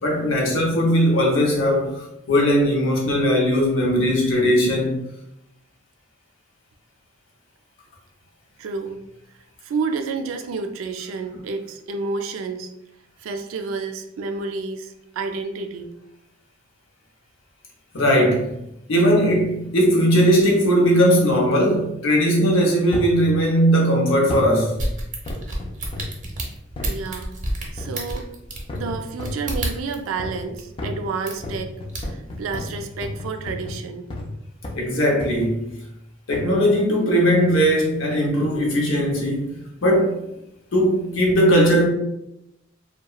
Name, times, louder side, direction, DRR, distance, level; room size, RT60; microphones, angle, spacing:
voice 1, 0.0-5.0 17.9-18.5 18.9-24.8 34.8-35.7 36.3-39.5 39.8-40.2 40.7-41.9, equal, 75° left, 0.7 m, -19 dB
voice 2, 8.6-9.0 9.6-12.7 13.2-15.9 26.8-27.3 27.7-28.3 28.8-31.7 32.0-34.1, right 4 dB, 85° right, 0.3 m, -30 dB
sound 1, 22.9-23.2 24.3-24.6 25.3-26.2 26.8-27.0 27.8-28.1 28.7-29.5 30.2-30.5 30.8-34.4 34.6-34.9 35.2-35.6 36.3-36.6 37.4-37.7 38.3-38.4, left 2 dB, 25° left, 0.3 m, -33 dB
sound 2, 24.8-30.1 30.5-30.6 31.3-31.6 31.9-32.7 33.1-33.2, right 1 dB, 40° right, 0.6 m, -29 dB
2.8 x 2.2 x 2.3 m
head